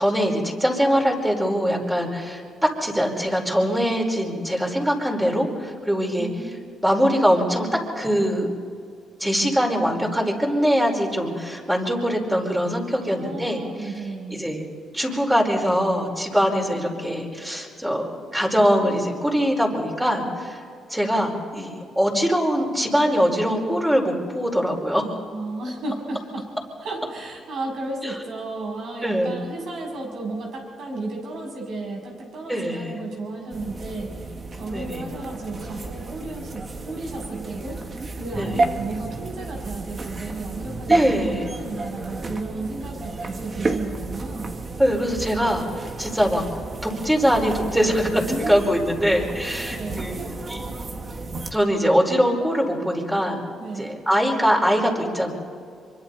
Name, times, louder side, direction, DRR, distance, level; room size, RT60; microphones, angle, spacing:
voice 1, 0.0-6.3 6.8-7.7 7.9-8.5 9.2-13.6 14.3-14.6 14.9-20.6 20.9-25.0 29.0-29.4 32.5-32.9 34.7-35.0 38.4-38.6 40.9-41.5 44.8-46.4 46.8-48.2 48.5-50.8 51.5-53.4 53.8-55.3, equal, 5° right, 0 dB, 5.0 m, -22 dB
voice 2, 6.2-6.5 13.0-14.4 25.3-26.5 26.8-44.6 48.1-48.6 49.7-50.1 53.6-54.0, right 2 dB, 65° right, 0 dB, 7.4 m, -33 dB
sound 1, 33.5-51.5, right 3 dB, 35° right, 2.0 m, -31 dB
26.0 x 24.0 x 4.2 m, 2.3 s
cardioid pair, 90°, 0 cm